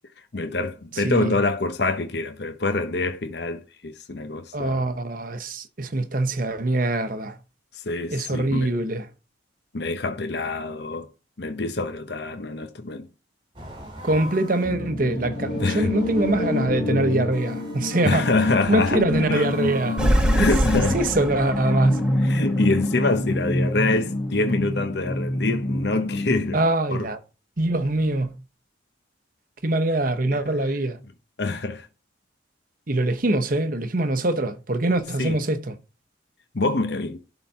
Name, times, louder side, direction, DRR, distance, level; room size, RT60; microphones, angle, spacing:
voice 1, 0.3-4.8 7.9-8.7 9.7-11.1 11.4-13.1 15.4-15.9 18.0-19.0 19.3-19.4 20.3-21.0 22.2-26.6 26.9-27.1 30.3-30.4 31.4-31.9 35.2-35.4 36.5-37.2, left 3 dB, 60° left, 0.9 m, -25 dB
voice 2, 1.0-1.4 4.5-7.4 8.1-9.1 14.0-18.3 18.7-20.0 20.4-22.0 26.5-27.2 27.6-28.4 29.6-31.0 32.9-35.8, right 2 dB, 45° right, 0.9 m, -24 dB
sound 1, 13.5-20.9, equal, 25° right, 2.7 m, -38 dB
sound 2, 14.7-26.7, left 1 dB, 35° left, 1.4 m, -27 dB
sound 3, 20.0-23.4, equal, 5° right, 1.4 m, -24 dB
11.5 x 3.9 x 5.6 m
head